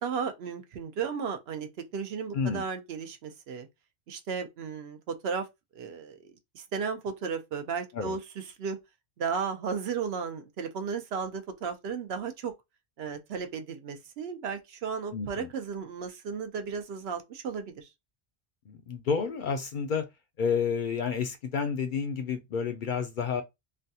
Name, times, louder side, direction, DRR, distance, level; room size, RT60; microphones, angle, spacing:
voice 1, 0.0-3.7 4.1-5.5 5.7-8.8 9.2-12.5 13.0-17.9, right 6 dB, 75° right, 0.9 m, -34 dB
voice 2, 2.3-2.6 7.9-8.2 15.1-15.5 18.7-20.1 20.4-23.4, left 6 dB, 60° left, 0.6 m, -30 dB
3.3 x 2.3 x 2.7 m
omnidirectional pair, 1.1 m